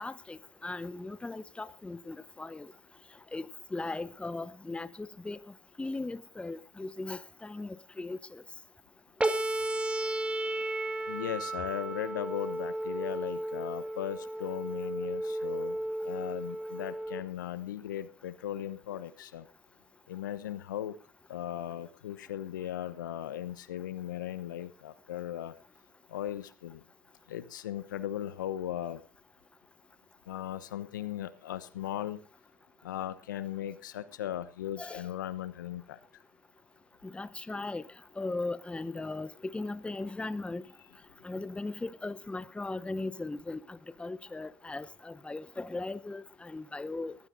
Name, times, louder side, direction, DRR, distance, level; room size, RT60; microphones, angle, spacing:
voice 1, 0.0-2.7 3.3-5.4 5.8-8.4 34.8-35.0 37.0-37.8 38.2-40.6 41.2-47.2, left 2 dB, 10° left, 0.9 m, -38 dB
sound 1, 9.2-17.2, right 1 dB, 10° right, 2.0 m, -34 dB
voice 2, 11.1-15.8 16.0-19.5 20.1-20.9 21.3-25.5 26.1-26.8 27.3-29.0 30.3-32.2 32.8-36.0, left 11 dB, 85° left, 1.0 m, -37 dB
22.0 x 15.5 x 2.7 m
hypercardioid pair, 75°, 10 cm